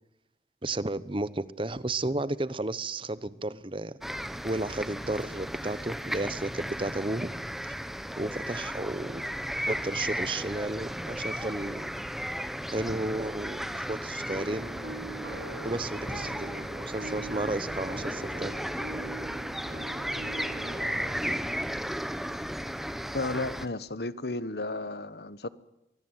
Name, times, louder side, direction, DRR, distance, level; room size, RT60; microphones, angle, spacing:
voice 1, 0.6-4.0 4.4-7.3 7.7-7.8 8.2-9.2 9.7-11.9 12.7-14.7 15.6-18.6, right 2 dB, 30° right, 1.0 m, -33 dB
sound 1, 4.0-23.7, equal, ahead, 1.0 m, -35 dB
sound 2, 14.2-21.4, right 3 dB, 85° right, 2.8 m, -43 dB
voice 2, 23.1-25.5, left 2 dB, 65° left, 1.3 m, -33 dB
24.5 x 20.5 x 9.1 m
head